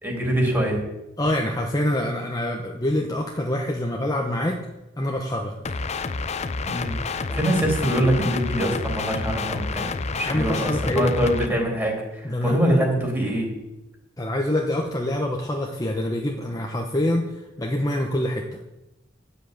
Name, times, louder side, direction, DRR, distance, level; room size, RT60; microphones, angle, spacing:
voice 1, 0.0-0.8 6.6-13.5, right 1 dB, 10° right, 0 dB, 3.5 m, -24 dB
voice 2, 1.2-4.6 5.0-5.5 7.3-7.4 10.2-11.1 12.2-12.8 14.2-18.6, left 1 dB, 20° left, 1 dB, 1.0 m, -26 dB
sound 1, 5.6-11.5, left 4 dB, 35° left, 0.6 m, -29 dB
9.9 x 7.9 x 8.5 m, 0.97 s
head